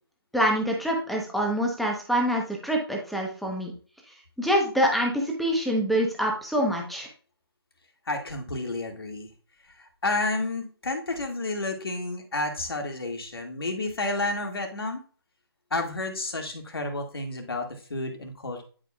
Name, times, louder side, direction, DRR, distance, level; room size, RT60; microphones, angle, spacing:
voice 1, 0.3-3.7 4.4-7.1, equal, ahead, 0 dB, 1.0 m, -25 dB
voice 2, 8.1-9.3 9.8-15.0 15.7-18.6, left 2 dB, 65° left, 3 dB, 2.1 m, -31 dB
10.5 x 5.0 x 2.4 m, 0.40 s
figure-of-eight pair, 155°, 13 cm